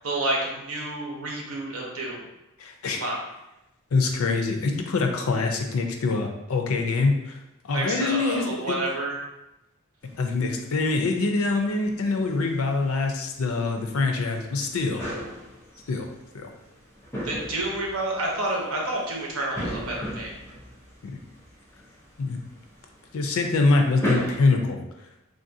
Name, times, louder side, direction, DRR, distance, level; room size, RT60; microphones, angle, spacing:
voice 1, 0.0-2.2 2.9-3.2 7.7-9.2 17.2-20.3, right 2 dB, 85° right, -1 dB, 0.8 m, -29 dB
voice 2, 2.6-3.0 3.9-7.4 7.7-8.8 10.2-15.1 15.9-16.1 16.3-16.5 21.0-21.1 22.2-22.4 23.1-24.8, left 3 dB, 90° left, 3 dB, 0.5 m, -24 dB
sound 1, 10.0-24.4, equal, 10° left, 0.7 m, -38 dB
3.4 x 2.5 x 2.6 m, 0.92 s
head